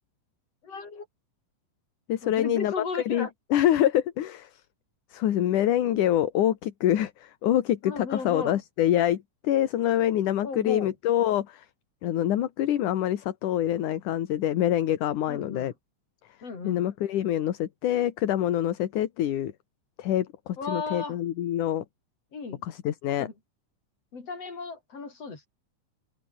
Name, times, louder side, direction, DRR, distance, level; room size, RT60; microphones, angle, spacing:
voice 1, 0.6-1.1 2.2-3.3 7.8-8.6 10.4-10.9 15.3-15.7 16.4-16.9 20.6-21.2 22.3-22.6 23.1-23.3 24.1-25.5, left 4 dB, 45° left, 6.2 m, -35 dB
voice 2, 2.1-2.7 3.1-4.5 5.1-11.6 12.0-15.7 16.6-19.5 20.0-21.8 22.6-23.3, left 11 dB, 65° left, 2.9 m, -25 dB
omnidirectional pair, 4.0 m